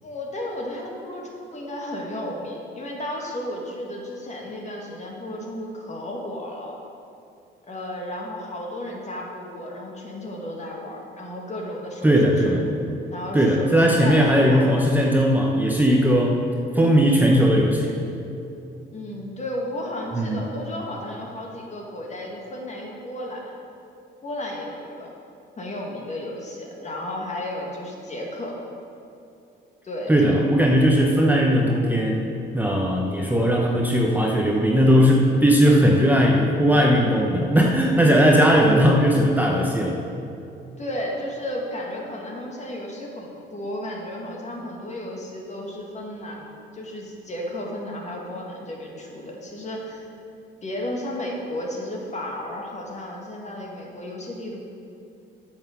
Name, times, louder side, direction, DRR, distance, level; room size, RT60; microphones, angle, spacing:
voice 1, 0.0-6.7 7.7-12.2 12.4-12.6 13.1-14.7 18.9-23.5 24.2-25.1 25.6-28.6 29.8-30.4 40.8-46.5 46.7-50.1 50.6-54.7, left 1 dB, 35° left, -1 dB, 2.1 m, -33 dB
voice 2, 12.0-12.6 13.3-16.4 16.7-18.0 20.1-20.5 30.1-32.3 32.5-40.0, equal, 10° right, -1 dB, 0.9 m, -18 dB
9.0 x 6.0 x 6.7 m, 2.7 s
cardioid pair, 90°, 20 cm